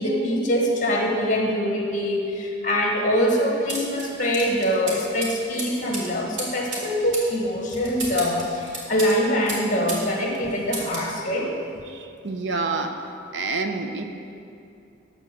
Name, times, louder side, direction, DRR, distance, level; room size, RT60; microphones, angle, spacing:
voice 1, 0.0-11.5, equal, 40° left, 0 dB, 1.5 m, -24 dB
sound 1, 3.7-10.1 10.3-11.1, right 2 dB, 85° right, 2.3 m, -34 dB
voice 2, 11.9-13.0 13.3-14.0, right 3 dB, 65° right, 6 dB, 0.8 m, -28 dB
13.5 x 4.5 x 6.9 m, 2.5 s
head